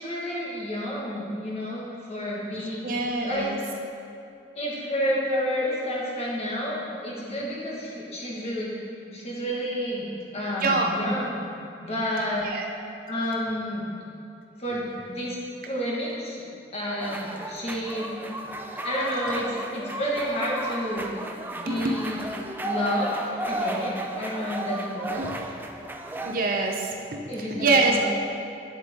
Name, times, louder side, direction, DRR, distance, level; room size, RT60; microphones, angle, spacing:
voice 1, 0.0-3.5 4.5-8.7 9.1-11.4 11.8-12.5 13.1-13.9 14.6-15.4 15.7-16.4 16.7-18.2 18.8-21.1 21.6-22.2 22.6-23.1 23.5-25.3 27.3-28.1, equal, 35° left, -5 dB, 1.7 m, -30 dB
voice 2, 2.8-3.6 7.4-7.5 10.6-10.9 12.4-12.6 21.7-21.9 25.2-25.4 26.2-28.0, right 3 dB, 55° right, 1 dB, 0.7 m, -25 dB
sound 1, 17.0-26.4, right 1 dB, 10° right, 0.4 m, -33 dB
9.0 x 7.1 x 3.7 m, 2.5 s
head